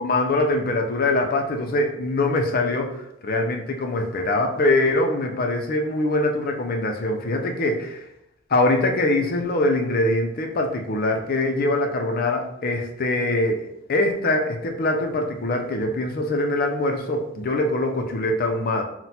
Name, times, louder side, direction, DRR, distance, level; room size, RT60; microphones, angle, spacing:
voice 1, 0.0-8.0 8.5-13.6 13.9-18.8, left 2 dB, 45° left, 3 dB, 0.5 m, -23 dB
5.8 x 2.1 x 2.8 m, 0.81 s
head